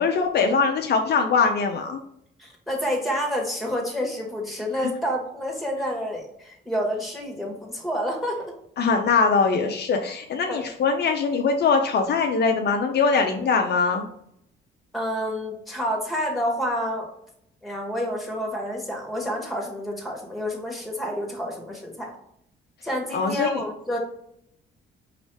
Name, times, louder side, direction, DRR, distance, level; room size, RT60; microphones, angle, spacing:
voice 1, 0.0-2.0 4.8-4.9 8.8-14.1 23.1-23.6, left 5 dB, 55° left, 3 dB, 0.6 m, -22 dB
voice 2, 2.4-8.4 10.5-10.7 14.9-17.1 17.6-22.1 22.8-24.0, equal, ahead, -2 dB, 1.8 m, -29 dB
5.0 x 3.1 x 3.3 m, 0.73 s
cardioid pair, 90°, 20 cm